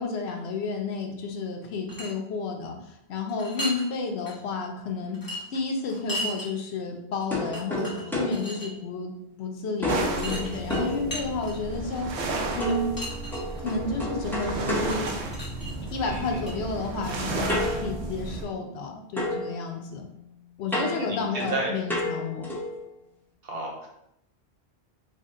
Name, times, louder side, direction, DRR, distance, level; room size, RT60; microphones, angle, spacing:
voice 1, 0.0-5.2 5.5-9.1 9.4-12.1 12.5-12.9 13.6-15.1 15.9-20.0 20.6-22.5, left 3 dB, 80° left, 2 dB, 0.9 m, -31 dB
sound 1, 1.6-2.1 3.3-3.9 4.2-4.3 5.1-6.5 7.2-7.3 7.5-8.7 10.1-11.8 12.6-13.7 14.9-16.5, equal, 20° left, 0.9 m, -36 dB
sound 2, 7.3-9.4 9.8-11.7 12.6-15.8 17.5-18.9 19.2-22.8, left 1 dB, ahead, 0.5 m, -33 dB
sound 3, 9.9-18.4, right 3 dB, 85° right, 0.9 m, -33 dB
voice 2, 16.0-16.6 21.0-21.7 23.4-23.9, right 2 dB, 60° right, -1 dB, 1.0 m, -33 dB
3.9 x 2.1 x 3.7 m, 0.80 s
omnidirectional pair, 1.1 m